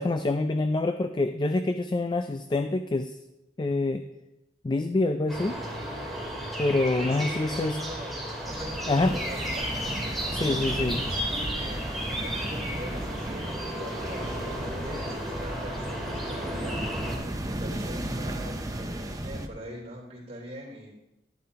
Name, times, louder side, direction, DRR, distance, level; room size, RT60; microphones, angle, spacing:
voice 1, 0.0-3.2 3.6-4.0 4.6-5.6 6.6-7.8 8.9-9.2 10.3-11.0, left 2 dB, 25° left, 8 dB, 0.4 m, -26 dB
sound 1, 5.3-17.1, equal, ahead, 2.3 m, -34 dB
voice 2, 6.9-9.7 10.4-16.8 17.4-20.9, equal, 40° right, -3 dB, 3.3 m, -42 dB
Palm Cove Waves, 8.4-19.5, right 1 dB, 20° right, 0.7 m, -35 dB
11.0 x 11.0 x 2.9 m, 0.93 s
head